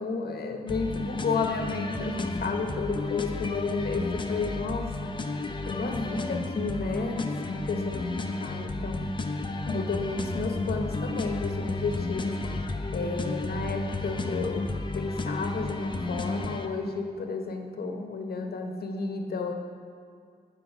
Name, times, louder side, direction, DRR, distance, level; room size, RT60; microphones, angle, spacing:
voice 1, 0.0-5.2 5.6-9.1 9.7-12.6 12.9-19.5, left 4 dB, 75° left, 4 dB, 0.8 m, -32 dB
sound 1, 0.7-16.7, left 2 dB, 30° left, 0.5 m, -32 dB
8.0 x 4.9 x 5.8 m, 2.2 s
wide cardioid pair, 100°, 16 cm